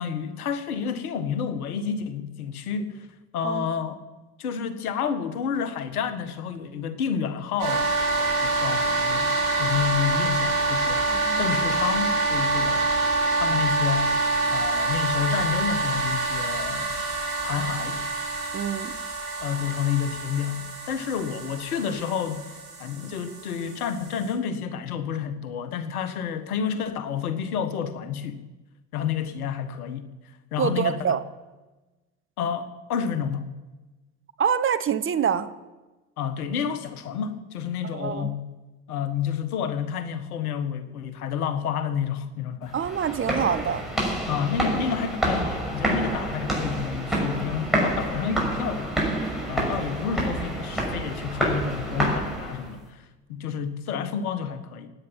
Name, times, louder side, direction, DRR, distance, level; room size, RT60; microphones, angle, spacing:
voice 1, 0.0-3.1 3.3-4.0 4.4-12.9 13.4-14.1 14.5-17.0 17.4-18.0 19.4-28.4 28.9-30.1 30.5-31.0 32.4-33.5 36.2-38.4 38.9-42.8 44.2-48.9 49.5-54.9, left 7 dB, 70° left, 12 dB, 1.5 m, -30 dB
sound 1, 7.6-24.3, right 3 dB, 65° right, 6.0 m, -26 dB
voice 2, 11.1-11.5 18.5-19.0 30.6-31.2 34.4-35.5 37.9-38.3 42.7-43.8, right 8 dB, 25° right, 12 dB, 1.1 m, -26 dB
sound 2, 42.7-52.7, right 1 dB, ahead, 6.4 m, -28 dB
17.0 x 9.2 x 8.9 m, 1.1 s
figure-of-eight pair, 65°, 46 cm